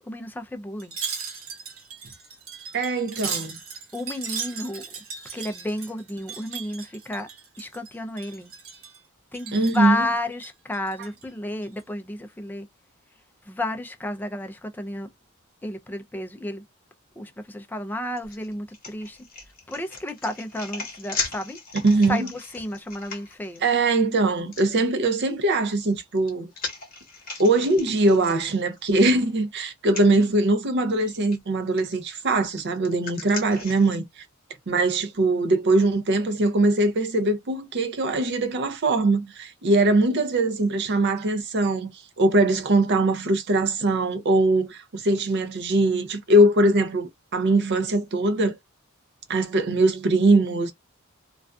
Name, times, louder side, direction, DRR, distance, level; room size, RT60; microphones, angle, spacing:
voice 1, 0.0-1.0 3.9-4.9 5.3-7.3 7.6-8.5 9.3-12.7 13.4-15.1 15.6-16.6 17.2-19.2 19.7-21.6 22.1-23.6, left 1 dB, 10° left, 0.3 m, -32 dB
Wind chime, 0.8-7.9 8.2-9.0 9.3-9.9 10.3-11.2 11.6-11.8, right 6 dB, 70° right, 0.9 m, -37 dB
voice 2, 2.7-3.6 9.5-10.0 21.8-22.3 23.6-26.5 27.4-34.2 34.7-41.9 42.2-48.6 49.3-50.7, right 2 dB, 55° right, 0.5 m, -21 dB
sound 1, 18.2-23.7 24.5-24.6 25.8-28.8 29.2-29.3 29.8-30.1 31.0-31.4 31.8-34.0, left 4 dB, 45° left, 1.1 m, -37 dB
2.4 x 2.3 x 2.2 m
head